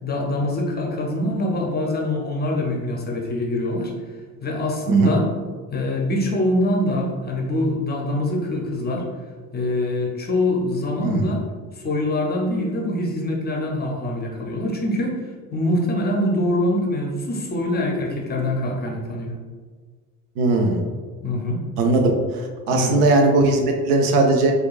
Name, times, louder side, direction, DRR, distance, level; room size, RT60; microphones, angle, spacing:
voice 1, 0.0-3.9 4.4-5.2 5.7-9.1 9.5-11.4 11.8-15.2 15.5-19.3 21.2-21.6 22.7-23.0, left 1 dB, 20° left, 0 dB, 0.6 m, -24 dB
voice 2, 11.0-11.3 20.4-20.8 21.8-22.1 22.7-24.5, right 2 dB, 70° right, 3 dB, 0.6 m, -18 dB
4.4 x 2.3 x 2.4 m, 1.5 s
figure-of-eight pair, 60°, 46 cm